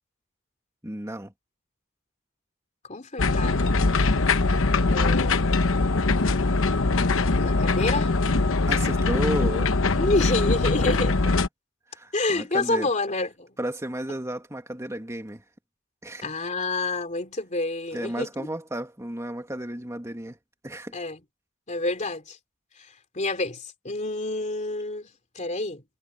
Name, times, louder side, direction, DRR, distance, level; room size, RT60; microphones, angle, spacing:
voice 1, 0.8-1.3 8.7-9.8 10.8-10.9 11.9-12.9 13.6-15.4 16.0-16.3 17.9-20.4 20.6-20.9, right 1 dB, 15° right, 2.4 m, -33 dB
voice 2, 2.9-3.8 4.9-5.8 7.4-8.1 10.0-11.1 12.1-13.5 16.2-18.5 20.9-21.2 21.7-22.4 23.1-25.8, left 2 dB, 35° left, 3.1 m, -28 dB
sound 1, 3.2-11.5, left 3 dB, 65° left, 1.0 m, -22 dB
head